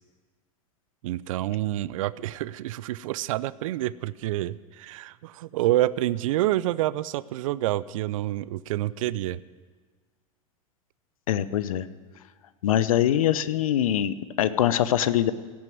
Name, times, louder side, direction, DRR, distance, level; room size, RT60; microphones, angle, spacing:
voice 1, 1.0-9.4, right 15 dB, 70° right, 18 dB, 0.4 m, -28 dB
voice 2, 11.3-11.9 12.6-15.3, left 11 dB, 75° left, 15 dB, 0.7 m, -23 dB
17.0 x 6.0 x 9.4 m, 1.5 s
hypercardioid pair, 90°, 18 cm